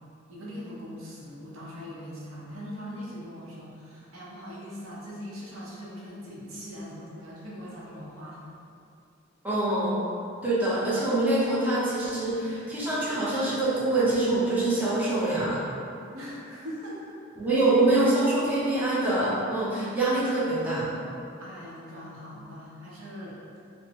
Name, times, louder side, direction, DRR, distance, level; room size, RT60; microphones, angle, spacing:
voice 1, 0.3-8.5 16.1-17.2 17.5-17.6 21.4-23.4, equal, 80° right, -5 dB, 0.7 m, -41 dB
voice 2, 9.4-10.1 10.4-15.6 17.4-20.9, right 2 dB, 10° right, -10 dB, 0.7 m, -25 dB
3.9 x 2.0 x 2.9 m, 2.6 s
head